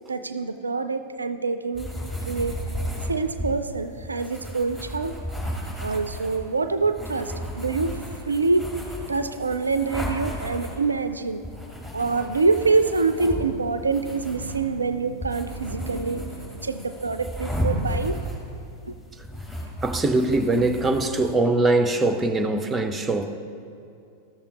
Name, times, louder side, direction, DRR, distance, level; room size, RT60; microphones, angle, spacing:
voice 1, 0.1-1.9 2.3-2.6 3.1-5.2 5.8-8.0 8.3-8.7 9.1-11.4 11.9-18.2, right 4 dB, 80° right, 10 dB, 0.3 m, -25 dB
sound 1, 1.7-21.3, equal, 5° left, 1.9 m, -34 dB
voice 2, 19.8-23.4, right 2 dB, 15° right, 7 dB, 0.5 m, -22 dB
13.5 x 6.8 x 2.9 m, 2.5 s
figure-of-eight pair, 90°, 0 cm